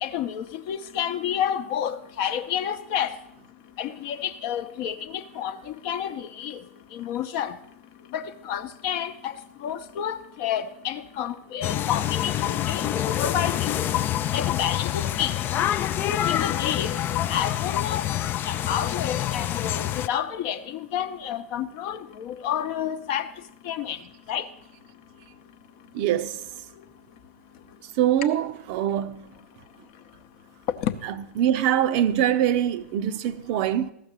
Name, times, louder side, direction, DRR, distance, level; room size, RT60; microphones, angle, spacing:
voice 1, 0.0-3.2 3.8-6.6 6.9-7.6 8.1-9.3 9.6-13.8 14.3-15.4 16.0-17.0 17.3-18.1 18.4-23.3 23.6-24.0 24.3-24.5 30.8-31.0, left 9 dB, 45° left, 0.8 m, -30 dB
sound 1, 11.6-20.1, left 12 dB, 25° left, 0.4 m, -26 dB
voice 2, 25.9-26.5 28.0-29.3 31.4-33.9, right 11 dB, 45° right, 0.6 m, -23 dB
14.0 x 6.5 x 7.3 m
figure-of-eight pair, 100°, 8 cm